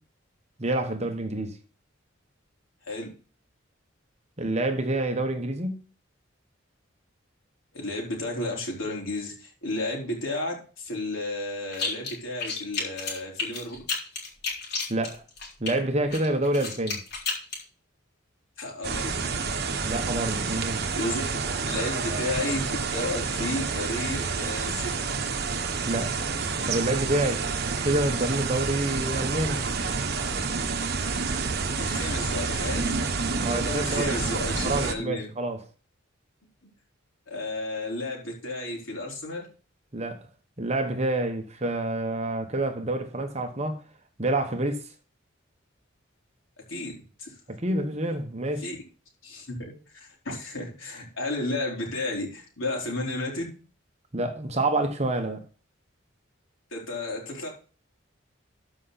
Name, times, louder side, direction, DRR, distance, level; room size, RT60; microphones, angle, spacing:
voice 1, 0.6-1.6 4.4-5.8 14.9-15.2 15.6-17.0 19.8-20.8 25.9-26.1 26.7-27.5 27.8-29.6 33.4-34.2 34.6-35.6 39.9-40.3 40.6-43.8 44.2-44.9 47.5-48.7 54.1-55.5, right 2 dB, 35° right, 1.1 m, -27 dB
voice 2, 7.7-13.8 18.6-19.4 20.9-21.2 21.6-24.9 31.7-32.9 33.5-35.3 37.3-39.5 46.7-47.3 48.6-48.8 49.2-53.6 56.7-57.5, left 2 dB, 80° left, 4.1 m, -33 dB
sound 1, 11.7-12.1 12.4-15.7 16.1-17.6, left 4 dB, 55° left, 3.8 m, -31 dB
sound 2, 18.8-34.9, right 4 dB, 50° right, 1.2 m, -29 dB
13.0 x 5.7 x 4.1 m
head